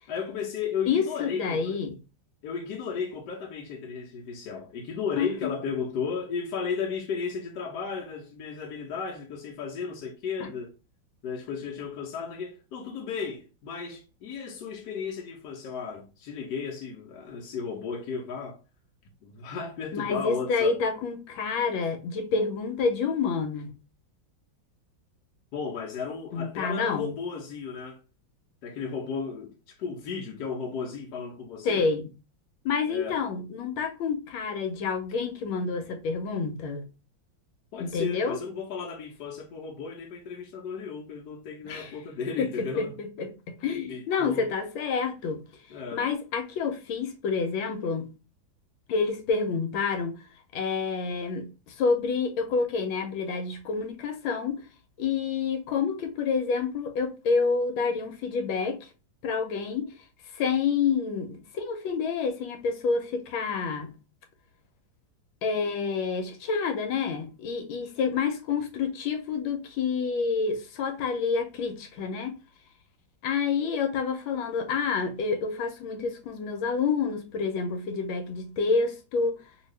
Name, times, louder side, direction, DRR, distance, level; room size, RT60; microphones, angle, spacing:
voice 1, 0.1-1.8 2.4-10.7 11.2-18.6 19.2-20.8 25.5-28.0 28.6-31.9 32.9-33.2 37.7-43.0 43.9-44.5 45.7-46.0, left 6 dB, 70° left, 1.1 m, -34 dB
voice 2, 0.9-2.0 5.2-5.5 10.4-10.5 19.9-23.8 26.3-27.1 31.6-32.1 32.6-36.8 37.8-38.4 41.6-41.9 42.4-45.5 45.9-48.1 48.9-50.2 50.5-54.6 55.0-58.8 59.2-59.9 60.3-64.0 65.4-72.3 73.2-79.4, left 5 dB, 85° left, 1.4 m, -28 dB
2.9 x 2.7 x 3.1 m
omnidirectional pair, 2.1 m